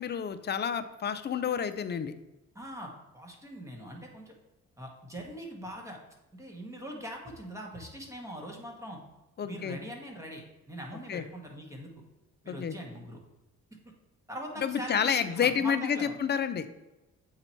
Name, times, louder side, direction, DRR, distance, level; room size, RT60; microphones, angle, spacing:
voice 1, 0.0-2.1 9.4-9.8 11.1-11.2 12.5-12.8 14.6-16.7, left 7 dB, 35° left, 11 dB, 0.5 m, -29 dB
voice 2, 2.5-4.3 4.8-6.0 6.3-9.0 9.4-11.9 12.4-13.2 14.3-16.1, equal, 10° right, 0 dB, 1.4 m, -42 dB
7.7 x 2.9 x 4.4 m, 1.0 s
cardioid pair, 90°, 30 cm